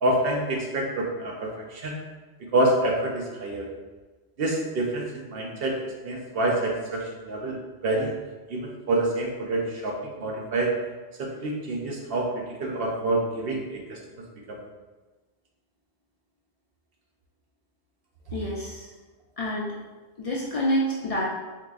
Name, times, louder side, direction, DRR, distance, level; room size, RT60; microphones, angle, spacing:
voice 1, 0.0-2.0 2.5-3.7 4.4-7.6 7.8-8.2 8.5-10.7 11.2-12.3 12.6-14.0 14.5-14.6, right 1 dB, 65° right, 0 dB, 0.7 m, -27 dB
voice 2, 18.3-18.9 19.4-19.7 20.2-21.2, equal, 60° left, -5 dB, 0.4 m, -27 dB
3.6 x 3.0 x 2.4 m, 1.2 s
omnidirectional pair, 1.1 m